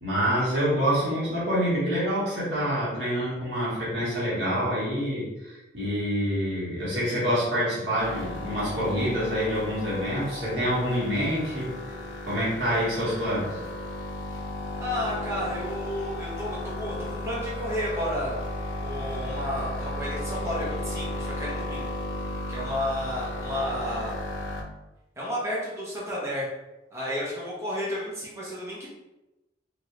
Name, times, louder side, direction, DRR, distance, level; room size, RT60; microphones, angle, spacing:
voice 1, 0.0-11.7 12.2-13.6, equal, 65° right, -8 dB, 1.5 m, -27 dB
sound 1, 8.0-24.6, left 1 dB, 85° left, 0.5 m, -34 dB
voice 2, 14.8-18.3 18.8-21.9 22.5-24.2 25.2-26.5 26.9-28.9, equal, 15° right, -6 dB, 0.8 m, -32 dB
3.1 x 2.6 x 2.7 m, 1.0 s
head